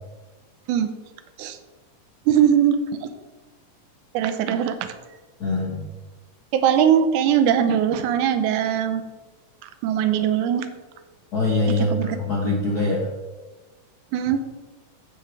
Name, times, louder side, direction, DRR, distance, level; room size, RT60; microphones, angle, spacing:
voice 1, 2.3-3.1 4.1-4.9 6.5-9.0 9.8-10.7 11.7-12.2 14.1-14.4, right 9 dB, 75° right, 9 dB, 2.1 m, -21 dB
voice 2, 5.4-5.9 11.3-13.0, left 2 dB, 65° left, -3 dB, 0.9 m, -23 dB
10.0 x 8.6 x 3.5 m, 1.2 s
omnidirectional pair, 3.8 m